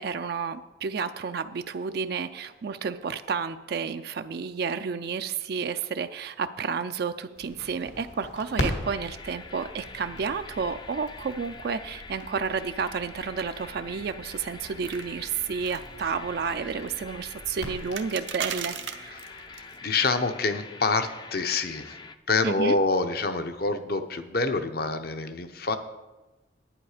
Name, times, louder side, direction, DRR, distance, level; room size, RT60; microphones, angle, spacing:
voice 1, 0.0-19.2 22.4-22.8, right 5 dB, 60° right, 9 dB, 0.4 m, -31 dB
Crackle, 7.4-18.6, left 1 dB, 80° left, 2.1 m, -40 dB
sound 1, 8.8-22.2, left 3 dB, 25° left, 0.4 m, -45 dB
sound 2, 14.8-19.8, right 8 dB, 85° right, 0.8 m, -39 dB
voice 2, 19.1-22.0 22.3-25.8, left 3 dB, 55° left, 9 dB, 0.8 m, -27 dB
11.0 x 9.1 x 4.9 m, 1.1 s
head